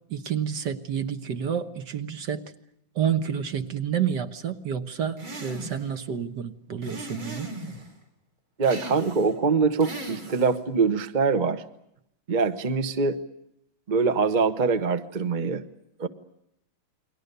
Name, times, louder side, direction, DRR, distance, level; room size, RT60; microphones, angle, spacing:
voice 1, 0.1-2.5 3.0-7.5, right 8 dB, 60° right, 8 dB, 1.9 m, -29 dB
sound 1, 5.2-5.9 6.8-7.9 8.6-9.3 9.8-10.6, right 1 dB, 80° right, 4.8 m, -38 dB
voice 2, 8.6-11.6 12.3-13.2 13.9-15.6 16.0-16.1, right 4 dB, 30° right, 9 dB, 1.0 m, -24 dB
30.0 x 22.5 x 6.8 m, 0.80 s
omnidirectional pair, 2.1 m